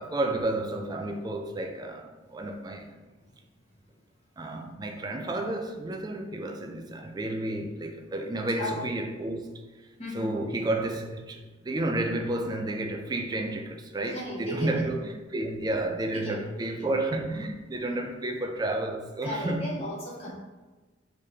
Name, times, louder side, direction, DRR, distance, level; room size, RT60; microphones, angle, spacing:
voice 1, 0.0-2.9 4.4-9.6 10.1-19.7, right 2 dB, 20° right, 0.3 m, -31 dB
voice 2, 10.0-10.3 14.1-14.9 16.2-16.4 16.8-16.9 19.2-20.3, equal, 30° left, 1.3 m, -35 dB
3.7 x 3.4 x 4.2 m
head